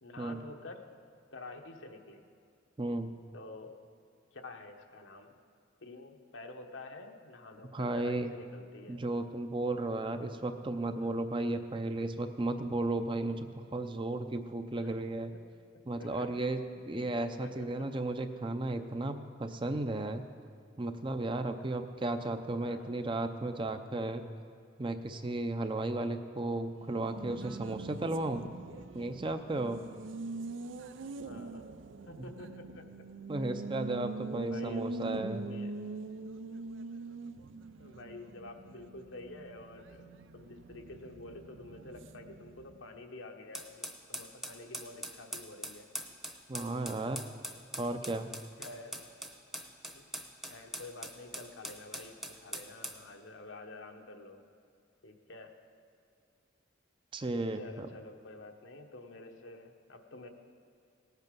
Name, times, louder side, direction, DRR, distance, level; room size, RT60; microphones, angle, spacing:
voice 1, 0.0-0.9 1.3-2.3 3.3-3.7 4.3-5.4 5.8-9.0 11.0-11.2 14.8-14.9 16.0-17.0 17.4-17.9 22.6-23.0 31.2-33.0 33.3-33.5 34.3-35.0 35.4-35.9 37.8-45.9 48.6-49.1 49.9-50.0 50.5-54.4 55.0-55.5 57.5-60.3, left 2 dB, 75° left, 4 dB, 1.1 m, -49 dB
voice 2, 2.8-3.1 7.7-8.3 8.9-15.3 15.9-16.6 16.9-20.2 20.8-24.2 24.8-28.4 28.9-29.8 33.3-35.5 46.5-47.2 47.8-48.3 57.1-57.9, right 2 dB, 25° right, 8 dB, 0.5 m, -34 dB
Race car auto racing, 26.7-42.9, right 3 dB, 75° right, 0.5 m, -43 dB
sound 1, 43.5-53.0, equal, ahead, 0.8 m, -43 dB
18.0 x 8.2 x 5.3 m, 2.3 s
head